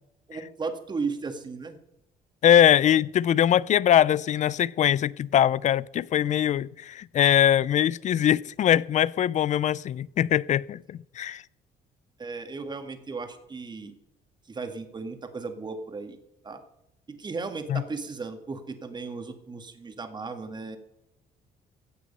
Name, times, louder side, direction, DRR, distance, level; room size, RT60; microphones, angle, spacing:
voice 1, 0.3-1.8 12.2-13.9 14.5-16.2 16.4-16.6 17.1-20.8, right 4 dB, 25° right, 1.9 m, -35 dB
voice 2, 2.4-11.4 17.7-17.8, left 10 dB, 45° left, 0.4 m, -22 dB
16.0 x 8.2 x 5.5 m
cardioid pair, 110°, 17 cm